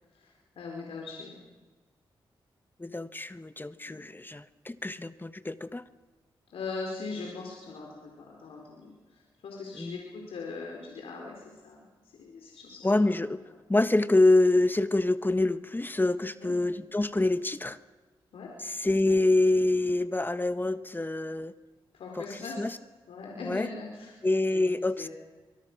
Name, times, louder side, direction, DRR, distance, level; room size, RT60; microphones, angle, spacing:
voice 1, 0.1-1.3 3.8-4.0 6.5-11.9 12.1-13.1 16.3-16.5 18.3-18.5 21.9-22.7 23.1-24.7 25.0-25.1, left 4 dB, 90° left, -1 dB, 4.6 m, -41 dB
voice 2, 2.8-5.8 9.8-10.0 12.8-13.4 13.7-17.8 18.6-21.5 22.2-22.3 22.6-22.8 23.4-23.7 24.2-25.1, left 2 dB, 20° left, 12 dB, 1.4 m, -26 dB
25.5 x 23.5 x 6.3 m, 1.2 s
cardioid pair, 55°, 9 cm